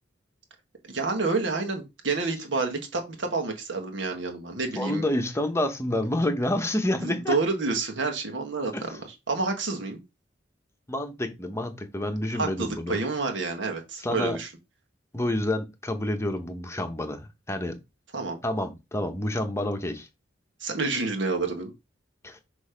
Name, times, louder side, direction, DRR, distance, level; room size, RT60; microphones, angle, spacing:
voice 1, 0.8-5.0 7.0-10.0 12.3-14.5 18.1-18.4 20.6-21.7, right 3 dB, 70° right, 1.5 m, -29 dB
voice 2, 4.7-7.4 8.7-8.8 10.9-13.0 14.0-14.4 15.1-17.8 18.4-20.1 22.2-22.4, left 1 dB, 15° left, 0.9 m, -28 dB
6.3 x 3.1 x 5.0 m
head